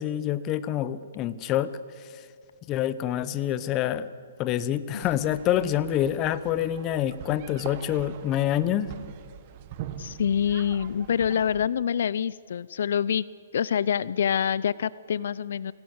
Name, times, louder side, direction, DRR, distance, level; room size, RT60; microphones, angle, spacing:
voice 1, 0.0-1.7 2.7-4.1 4.4-8.9, left 11 dB, 25° left, 15 dB, 0.9 m, -26 dB
sound 1, 5.0-11.7, right 10 dB, 35° right, 1.3 m, -43 dB
voice 2, 10.0-13.2 13.5-15.7, left 8 dB, 65° left, 20 dB, 0.4 m, -26 dB
25.0 x 17.0 x 8.0 m, 2.2 s
hypercardioid pair, 155°, 0 cm